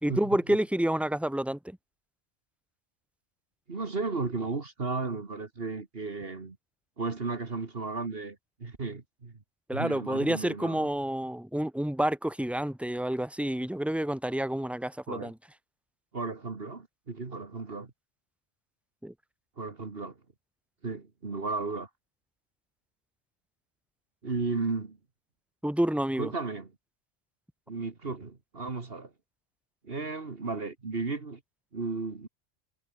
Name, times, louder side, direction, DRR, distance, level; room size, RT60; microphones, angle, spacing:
voice 1, 0.0-1.8 9.7-15.3 19.0-19.1 25.6-26.3, right 1 dB, ahead, 2.5 m, -29 dB
voice 2, 3.7-6.6 7.0-9.3 9.7-10.9 15.1-15.3 16.1-17.9 19.6-20.1 20.8-21.9 24.2-25.0 26.2-26.7 27.7-29.1 29.8-31.4 31.7-32.3, right 3 dB, 60° right, 2.2 m, -34 dB
omnidirectional pair, 1.1 m